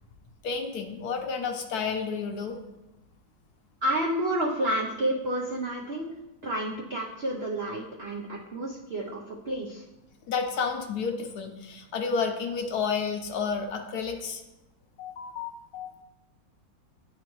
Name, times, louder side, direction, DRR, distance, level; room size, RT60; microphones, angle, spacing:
voice 1, 0.4-2.6 10.3-14.4 15.0-15.9, left 5 dB, 70° left, 4 dB, 1.1 m, -31 dB
voice 2, 3.8-6.1 6.4-9.8, right 1 dB, 70° right, -2 dB, 0.5 m, -30 dB
10.5 x 3.9 x 3.0 m, 0.97 s
omnidirectional pair, 2.0 m